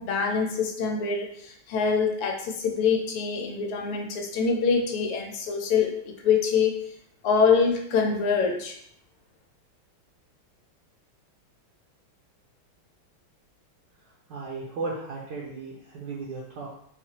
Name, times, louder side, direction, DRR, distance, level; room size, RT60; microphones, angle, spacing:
voice 1, 0.0-6.9 7.2-8.7, left 5 dB, 90° left, 2 dB, 1.6 m, -25 dB
voice 2, 14.3-16.7, right 3 dB, 70° right, -5 dB, 1.2 m, -35 dB
4.2 x 2.4 x 2.8 m, 0.67 s
omnidirectional pair, 2.4 m